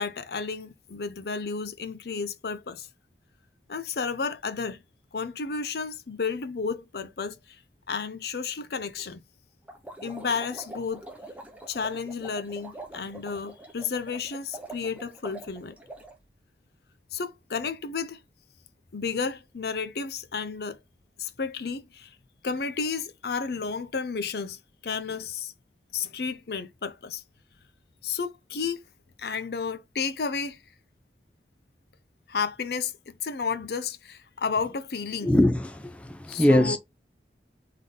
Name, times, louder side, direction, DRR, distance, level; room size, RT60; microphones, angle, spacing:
voice 1, 0.0-2.9 3.7-4.8 5.1-7.4 7.9-9.2 10.0-11.0 11.7-15.8 17.1-18.2 18.9-20.8 21.2-22.1 22.4-24.6 24.8-25.5 25.9-27.2 28.0-28.8 29.2-30.6 32.3-35.3 36.3-36.8, left 5 dB, 65° left, 0.6 m, -32 dB
sound 1, 9.7-16.2, right 2 dB, 10° right, 0.9 m, -44 dB
voice 2, 35.2-36.8, left 1 dB, 5° left, 0.5 m, -22 dB
3.8 x 3.7 x 3.7 m
head